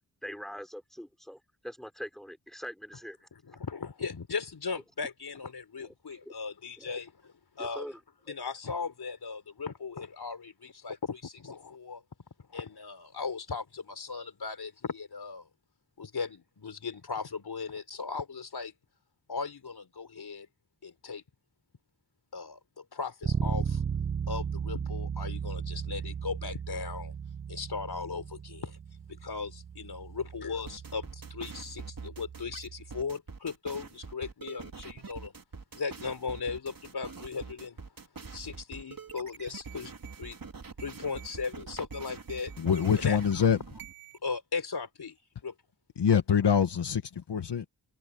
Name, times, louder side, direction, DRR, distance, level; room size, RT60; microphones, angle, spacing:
voice 1, 0.2-3.3 5.8-5.9 6.3-6.4 6.8-7.0 7.6-8.0, equal, ahead, 5.2 m, -43 dB
voice 2, 3.3-7.9 8.3-12.0 12.5-15.5 16.0-18.7 19.3-20.5 20.8-21.2 22.3-23.8 24.3-27.1 27.5-28.8 29.1-35.3 35.7-37.8 38.3-39.9 40.2-40.4 40.8-42.5 42.9-43.2 44.2-45.2 45.4-45.5, left 5 dB, 65° left, 4.5 m, -37 dB
Bass guitar, 23.2-33.0, right 7 dB, 30° right, 0.3 m, -36 dB
sound 1, 30.7-44.2, right 5 dB, 55° right, 4.0 m, -45 dB
voice 3, 42.6-43.6 46.0-47.7, left 7 dB, 85° left, 1.6 m, -25 dB
wide cardioid pair, 75°, 40 cm